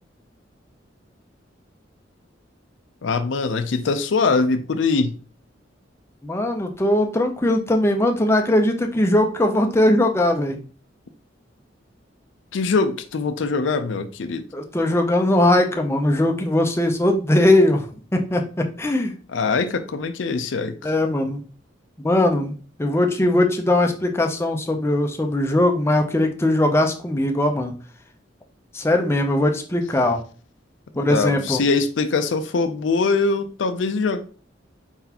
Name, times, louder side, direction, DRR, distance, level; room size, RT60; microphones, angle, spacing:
voice 1, 3.0-5.2 12.5-14.4 19.3-20.9 31.1-34.2, left 4 dB, 85° left, 0.5 m, -22 dB
voice 2, 6.2-10.6 14.5-17.9 18.1-19.1 20.8-21.4 22.0-27.7 28.7-30.2 31.0-31.6, left 1 dB, 15° left, 0.5 m, -20 dB
4.4 x 4.0 x 2.8 m
head